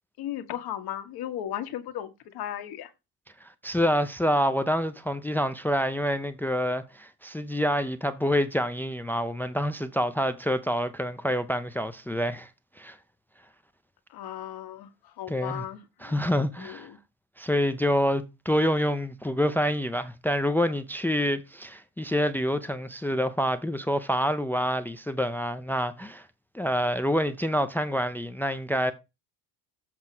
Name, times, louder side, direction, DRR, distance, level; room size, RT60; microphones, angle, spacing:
voice 1, 0.2-2.9 14.1-16.1 16.6-17.0, left 11 dB, 65° left, 1.5 m, -36 dB
voice 2, 3.4-12.5 12.8-13.0 15.3-15.6 16.0-16.9 17.4-26.3 26.5-28.9, equal, 5° left, 0.5 m, -27 dB
7.6 x 4.5 x 5.9 m
cardioid pair, 135°, 40 cm